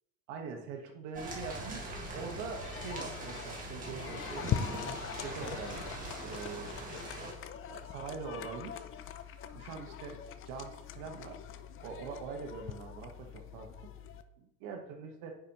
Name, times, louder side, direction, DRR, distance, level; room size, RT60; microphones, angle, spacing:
voice 1, 0.3-6.7 7.7-8.9 9.3-11.4 11.8-13.7 14.4-15.3, right 5 dB, 80° right, 3 dB, 1.4 m, -43 dB
sound 1, 1.1-7.3, right 2 dB, 25° right, 1.7 m, -42 dB
sound 2, 1.3-14.2, left 10 dB, 40° left, 0.4 m, -42 dB
9.6 x 5.0 x 3.0 m, 0.85 s
cardioid pair, 140°, 34 cm